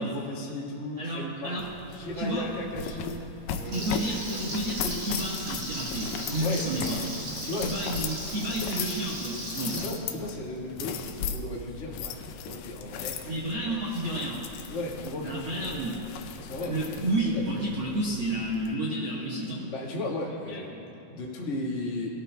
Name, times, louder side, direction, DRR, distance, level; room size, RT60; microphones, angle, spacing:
voice 1, 0.0-1.6 1.9-3.2 3.6-3.8 6.3-7.0 7.4-7.9 9.7-13.2 13.7-13.9 14.7-15.6 16.4-17.6 19.7-20.7 21.1-22.1, left 1 dB, 55° left, -5 dB, 0.8 m, -35 dB
voice 2, 1.0-1.7 2.2-2.5 3.6-7.0 7.6-9.8 11.2-11.3 13.2-14.4 15.2-16.0 16.7-19.7 20.5-20.9, right 1 dB, 65° right, -6 dB, 1.2 m, -31 dB
sound 1, 1.6-18.7, left 7 dB, 80° left, 2.1 m, -38 dB
Frying (food), 3.7-9.8, right 1 dB, 30° right, 2.3 m, -37 dB
20.0 x 13.0 x 2.3 m, 3.0 s
omnidirectional pair, 4.3 m